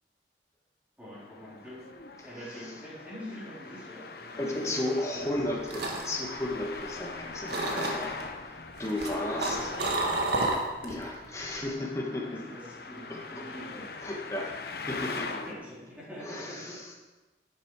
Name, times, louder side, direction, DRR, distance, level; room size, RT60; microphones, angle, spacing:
voice 1, 1.0-1.9 2.2-5.6 9.6-10.2 12.2-13.9 14.7-14.8 15.5-17.0, equal, 10° right, -8 dB, 3.8 m, -45 dB
Traffic noise roadway noise, 1.1-15.5, left 4 dB, 55° left, 0.8 m, -42 dB
voice 2, 2.2-2.7 4.4-9.7 10.8-12.6 13.1-13.2 14.0-14.5 14.9-15.4 16.2-16.9, left 1 dB, 15° left, -1 dB, 1.7 m, -34 dB
sound 1, 5.3-7.1 7.5-8.2 8.8-11.0 11.3-11.7, right 2 dB, 65° right, 1.7 m, -31 dB
11.5 x 8.6 x 5.0 m, 1.2 s
head